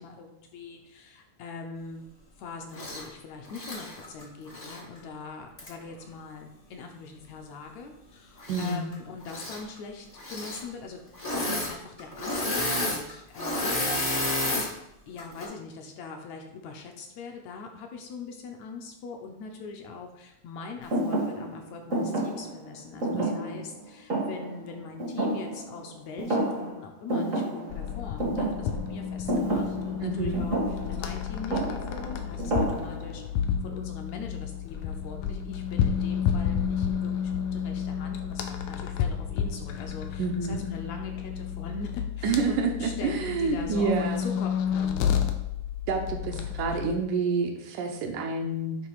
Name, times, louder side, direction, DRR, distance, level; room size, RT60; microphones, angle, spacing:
voice 1, 0.0-2.1 2.4-11.0 11.3-14.3 15.1-30.6 30.9-33.2 33.6-45.2, left 4 dB, 70° left, 3 dB, 2.0 m, -42 dB
Engine / Mechanisms, 2.7-3.0 3.5-4.8 5.6-5.7 8.4-8.9 9.2-9.6 10.2-10.6 11.1-11.7 12.0-14.7 15.2-15.5, left 1 dB, 45° left, 0.5 m, -30 dB
voice 2, 8.5-8.9 23.1-23.6 30.0-30.4 40.2-40.6 42.2-44.3 45.9-48.8, right 4 dB, 85° right, 3 dB, 2.4 m, -28 dB
Thump thud, 20.9-25.9 26.2-26.8 27.1-33.2, right 1 dB, 50° right, 0.9 m, -30 dB
sound 1, 27.7-47.0, left 8 dB, 90° left, 2.1 m, -31 dB
9.3 x 3.3 x 4.8 m, 0.83 s
omnidirectional pair, 3.5 m